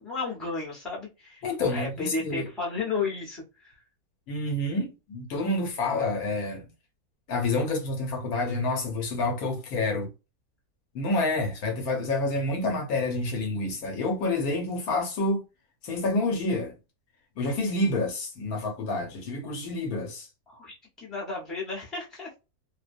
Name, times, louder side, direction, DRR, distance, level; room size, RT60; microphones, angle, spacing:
voice 1, 0.0-1.4 1.7-3.7 20.5-22.3, left 4 dB, ahead, 0.7 m, -33 dB
voice 2, 1.4-2.5 4.3-6.7 7.3-10.1 10.9-15.4 15.8-16.7 17.4-20.3, left 2 dB, 70° left, 1.2 m, -28 dB
2.7 x 2.1 x 2.4 m
omnidirectional pair, 1.7 m